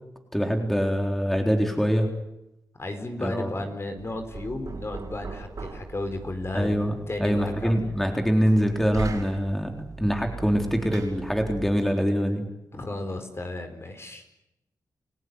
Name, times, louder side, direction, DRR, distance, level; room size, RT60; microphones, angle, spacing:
voice 1, 0.3-2.1 3.2-3.5 6.5-6.9 7.2-9.7 10.0-12.4, equal, 5° left, 3 dB, 3.8 m, -24 dB
voice 2, 2.8-6.8 7.1-7.8 12.7-14.2, left 2 dB, 35° left, 6 dB, 4.8 m, -33 dB
Knock, 4.0-11.9, right 5 dB, 50° right, 6.7 m, -40 dB
29.5 x 16.0 x 9.6 m, 0.90 s
cardioid pair, 60°, 7 cm